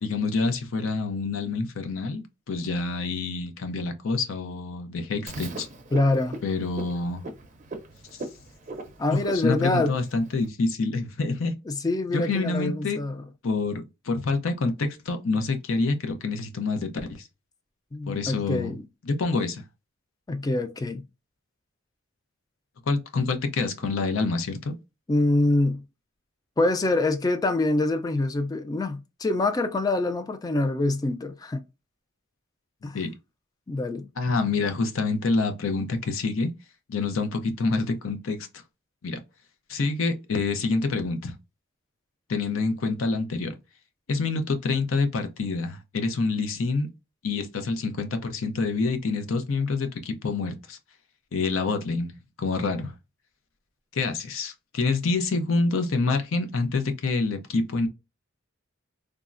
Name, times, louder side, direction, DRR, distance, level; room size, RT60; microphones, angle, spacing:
voice 1, 0.0-5.7 6.4-7.2 8.1-8.2 9.1-11.5 12.1-13.0 13.4-17.3 18.1-18.7 19.0-19.6 22.9-24.7 32.9-33.1 34.2-36.5 36.9-38.4 39.0-39.2 39.7-41.3 42.3-43.5 44.1-46.9 47.2-50.8 51.3-52.1 52.4-52.9 53.9-57.9, left 3 dB, 75° left, 0.5 m, -27 dB
Frog, 5.3-10.5, right 2 dB, 40° right, 0.5 m, -40 dB
voice 2, 5.9-6.4 9.0-10.0 11.7-13.2 17.9-18.8 20.3-21.0 25.1-25.8 26.6-31.6 32.8-33.0 33.7-34.1, left 2 dB, 20° left, 0.3 m, -25 dB
3.5 x 2.0 x 2.4 m
head